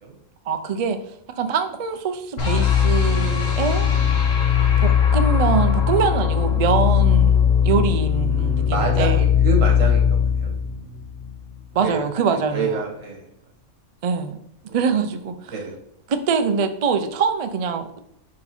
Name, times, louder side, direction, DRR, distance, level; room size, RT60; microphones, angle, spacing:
voice 1, 0.5-1.0 1.4-3.9 4.8-7.4 7.6-9.2 11.7-12.8 14.0-14.4 14.7-15.5 16.1-18.0, right 5 dB, 60° right, 8 dB, 0.3 m, -23 dB
sound 1, 2.4-11.5, left 8 dB, 85° left, 1.5 m, -19 dB
voice 2, 4.0-4.7 8.3-10.6 11.8-12.0 12.3-13.2 14.7-15.0 15.5-15.7, right 4 dB, 85° right, 2 dB, 1.6 m, -28 dB
5.3 x 4.7 x 4.2 m, 0.74 s
omnidirectional pair, 1.3 m